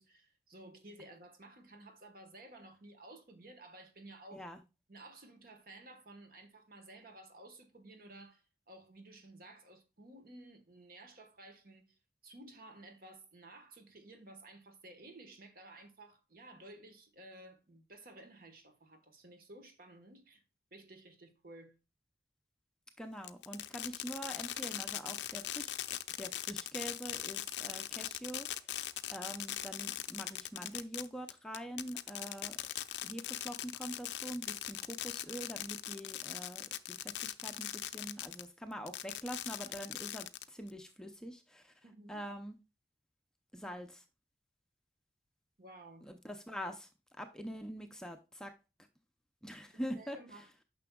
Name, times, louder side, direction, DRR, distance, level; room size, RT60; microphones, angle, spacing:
voice 1, 0.0-4.5 4.9-12.0 12.2-20.4 20.7-21.8 41.8-42.2 45.6-46.1 49.9-50.5, right 2 dB, 50° right, 1.3 m, -54 dB
voice 2, 23.0-25.7 26.2-28.8 29.1-32.6 33.0-41.7 42.1-42.6 43.5-44.0 46.0-46.9 47.2-48.5 49.4-50.2, equal, 5° left, 0.5 m, -44 dB
Fireworks, 23.2-38.5 38.9-40.7, left 13 dB, 75° left, 0.5 m, -40 dB
9.5 x 6.0 x 2.3 m
head